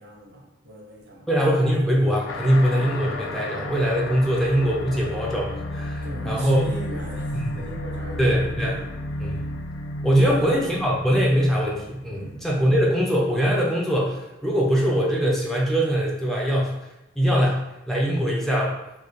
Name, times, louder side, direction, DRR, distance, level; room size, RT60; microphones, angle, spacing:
voice 1, 0.0-1.3 6.0-8.9 9.2-9.4 10.2-10.5 12.1-12.4, right 1 dB, 70° right, -1 dB, 0.8 m, -38 dB
voice 2, 1.3-6.6 7.3-7.7 8.2-8.7 9.2-9.4 10.0-16.8 17.2-18.8, equal, ahead, -4 dB, 0.5 m, -22 dB
sound 1, 2.3-13.2, left 1 dB, 80° left, 0.3 m, -33 dB
3.2 x 2.3 x 3.7 m, 0.92 s
head